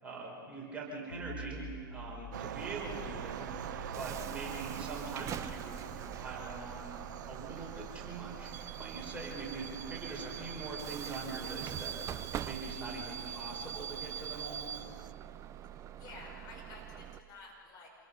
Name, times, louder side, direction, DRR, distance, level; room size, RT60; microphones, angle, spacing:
voice 1, 0.0-1.6 1.9-3.5 3.9-7.0 7.3-14.6, right 3 dB, 10° right, -4 dB, 5.4 m, -43 dB
sound 1, 1.1-12.5, left 2 dB, 80° left, 4.4 m, -52 dB
sound 2, 2.3-15.1, right 11 dB, 60° right, 0.7 m, -47 dB
Bus / Alarm, 2.6-17.2, right 9 dB, 25° right, 0.6 m, -43 dB
voice 2, 15.7-17.9, left 3 dB, 35° left, -1 dB, 5.2 m, -51 dB
28.0 x 21.5 x 5.8 m, 2.3 s
figure-of-eight pair, 100°, 11 cm